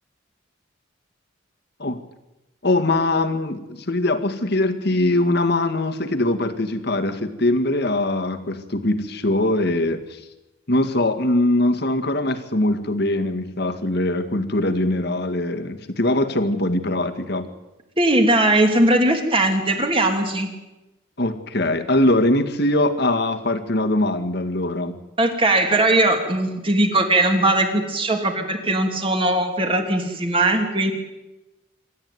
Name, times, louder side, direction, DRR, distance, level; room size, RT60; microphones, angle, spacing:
voice 1, 2.6-10.2 10.7-17.5 21.2-25.0, left 1 dB, 55° left, 7 dB, 2.0 m, -22 dB
voice 2, 18.0-20.5 25.2-30.9, right 1 dB, 25° right, 4 dB, 3.1 m, -19 dB
27.0 x 13.5 x 9.5 m, 1.0 s
head